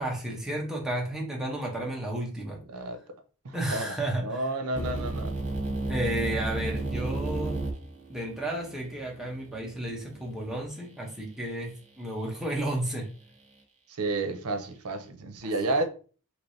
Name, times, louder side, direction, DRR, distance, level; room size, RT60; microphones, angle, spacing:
voice 1, 0.0-2.6 3.5-4.5 5.9-7.6 8.1-13.1, right 1 dB, ahead, 0.8 m, -32 dB
voice 2, 2.7-3.0 3.4-5.4 13.9-15.9, right 2 dB, 85° right, 0.6 m, -31 dB
sound 1, 4.7-10.7, right 2 dB, 55° right, 1.1 m, -33 dB
3.2 x 3.0 x 2.6 m
head